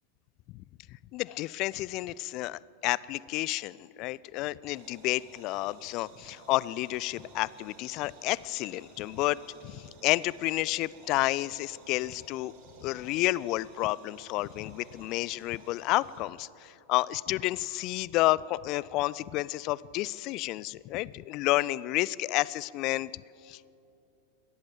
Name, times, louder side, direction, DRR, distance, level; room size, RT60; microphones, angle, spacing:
voice 1, 1.1-9.4 9.6-12.5 12.8-23.7, left 18 dB, 40° left, 22 dB, 0.4 m, -30 dB
sound 1, 4.7-16.2, right 3 dB, 40° right, 4.2 m, -54 dB
21.5 x 17.5 x 7.6 m, 2.8 s
figure-of-eight pair, 90°, 0 cm